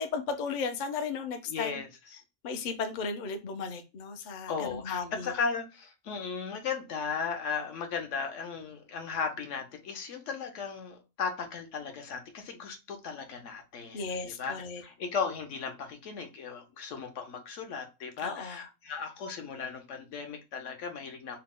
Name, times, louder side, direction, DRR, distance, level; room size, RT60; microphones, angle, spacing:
voice 1, 0.0-1.8 2.4-5.3 13.9-14.8 18.2-18.6, left 5 dB, 60° left, 0.5 m, -35 dB
voice 2, 1.5-2.2 4.5-21.4, left 5 dB, 75° left, 1.0 m, -36 dB
2.9 x 2.0 x 3.5 m
omnidirectional pair, 1.3 m